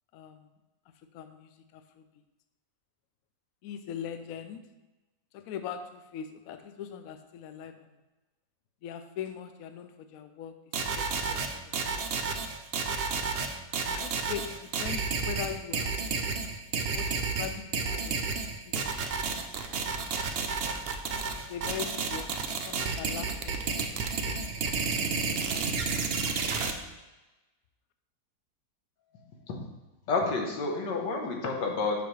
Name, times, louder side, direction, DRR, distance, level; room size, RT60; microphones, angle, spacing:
voice 1, 0.1-0.5 1.1-2.1 3.6-4.6 5.3-7.9 8.8-10.6 10.8-11.4 11.7-12.1 13.0-13.1 13.8-16.0 16.9-18.2 18.6-18.8 21.3-22.4 22.7-24.6 25.1-25.8 26.3-26.9, left 9 dB, 70° left, 8 dB, 0.9 m, -41 dB
sound 1, 10.7-26.7, right 5 dB, 70° right, 0.5 m, -31 dB
voice 2, 30.1-32.0, left 3 dB, 90° left, 1 dB, 1.8 m, -29 dB
6.9 x 5.9 x 3.2 m, 1.1 s
omnidirectional pair, 1.8 m